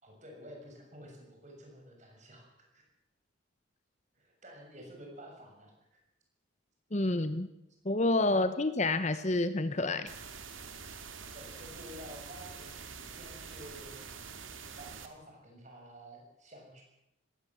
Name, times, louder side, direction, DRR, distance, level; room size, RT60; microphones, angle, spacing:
voice 1, 0.0-2.8 4.1-6.0 11.3-14.0 14.7-16.8, equal, 35° right, 1 dB, 6.9 m, -51 dB
voice 2, 6.9-7.5 7.8-10.1, left 2 dB, 35° left, 12 dB, 0.9 m, -28 dB
sound 1, 10.1-15.1, right 5 dB, 70° right, 2.4 m, -46 dB
20.0 x 18.0 x 7.4 m, 0.88 s
head